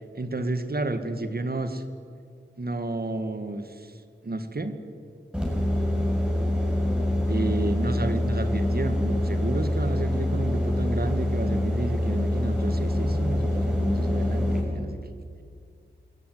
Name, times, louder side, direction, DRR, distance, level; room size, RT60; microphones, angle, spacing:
voice 1, 0.1-1.8 2.6-3.9 4.2-4.8 7.3-15.0, right 2 dB, 50° right, 9 dB, 2.0 m, -31 dB
sound 1, 5.3-14.6, left 1 dB, 5° right, 6.6 m, -25 dB
28.5 x 14.0 x 9.3 m, 2.2 s
wide cardioid pair, 55°, 20 cm